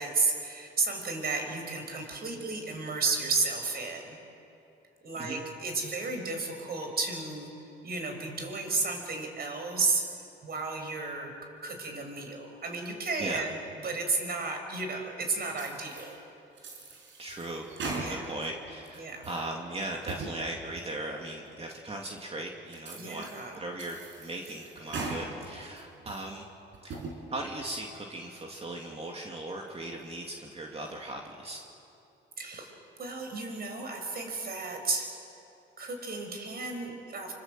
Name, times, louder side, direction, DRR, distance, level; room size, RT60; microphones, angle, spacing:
voice 1, 0.0-4.2 5.0-7.5 7.8-10.0 10.4-11.3 11.6-16.2 18.0-18.3 19.0-19.2 23.0-23.6 32.4-32.7 33.0-35.1 35.8-37.3, right 3 dB, 50° right, 4 dB, 5.6 m, -33 dB
sound 1, 15.5-16.1 16.6-18.5 18.8-19.5 19.9-20.3 20.8-20.9 21.5-21.6 22.2-22.3 22.7-23.4 23.8-25.2 25.6-26.3 26.7-27.1, right 3 dB, 75° right, 5.4 m, -40 dB
voice 2, 17.2-26.5 26.8-27.0 27.3-31.6, right 1 dB, 30° right, 0 dB, 2.6 m, -38 dB
25.5 x 25.5 x 7.7 m, 2.8 s
cardioid pair, 90°, 20 cm